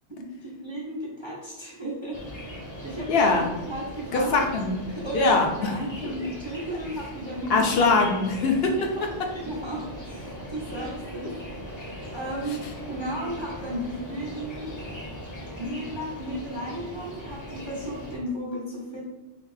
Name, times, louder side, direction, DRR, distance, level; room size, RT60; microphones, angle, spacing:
voice 1, 0.2-2.2 2.8-4.3 4.9-7.6 8.4-8.5 8.8-9.0 9.3-11.7 12.1-14.7 15.6-19.1, right 1 dB, 35° right, -4 dB, 0.5 m, -34 dB
sound 1, 2.1-18.2, equal, 20° left, 0.5 m, -39 dB
voice 2, 3.1-3.5 4.1-4.8 5.1-5.9 7.5-8.7 12.5-12.6, left 3 dB, 65° left, 2 dB, 0.8 m, -22 dB
2.9 x 2.6 x 3.9 m, 1.0 s
omnidirectional pair, 1.2 m